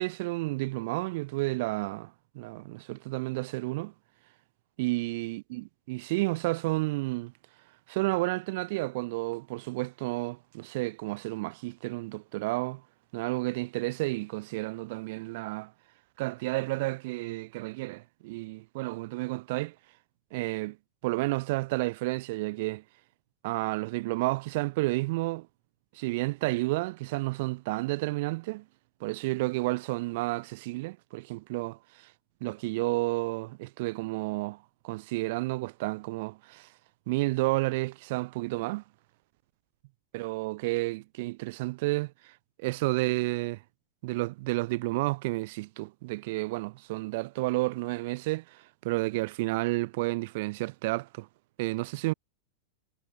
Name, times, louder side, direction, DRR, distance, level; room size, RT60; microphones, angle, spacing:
voice 1, 0.0-3.9 4.8-7.3 7.9-12.8 13.1-15.7 16.2-19.7 20.3-20.8 21.0-22.8 23.4-25.5 25.9-28.6 29.0-32.1 32.4-34.6 34.8-36.7 37.1-38.8 40.1-43.6 44.0-51.3 51.6-52.1, right 22 dB, 60° right, 1.2 m, -31 dB
hypercardioid pair, 120°, 0 cm